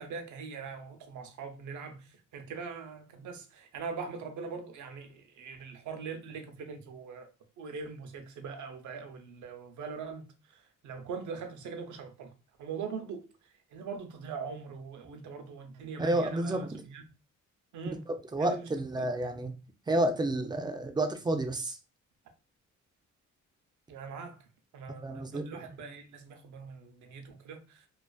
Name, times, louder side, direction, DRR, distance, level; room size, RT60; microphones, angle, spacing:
voice 1, 0.0-7.3 7.6-12.3 12.6-13.3 13.7-17.0 17.7-18.1 18.4-18.7 19.0-19.1 23.9-24.4 24.7-27.9, right 5 dB, 70° right, 0.6 m, -42 dB
voice 2, 16.0-16.8 18.1-19.5 19.9-21.8 25.0-25.6, right 1 dB, 15° right, 0.3 m, -30 dB
2.4 x 2.4 x 2.3 m
cardioid pair, 90°, 30 cm